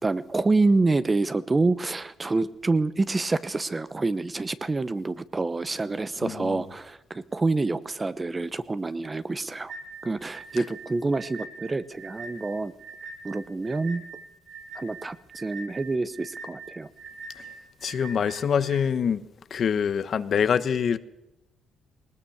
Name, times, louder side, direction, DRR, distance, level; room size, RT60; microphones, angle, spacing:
voice 1, 0.0-9.7 10.0-12.7 13.2-14.0 14.7-16.9, right 3 dB, 25° right, 1.0 m, -27 dB
voice 2, 6.2-6.6 17.4-17.5 17.8-19.2 19.5-21.0, left 7 dB, 55° left, 1.1 m, -25 dB
sound 1, 9.7-18.8, right 3 dB, 50° right, 3.4 m, -43 dB
19.5 x 19.5 x 7.2 m
cardioid pair, 90°, 0 cm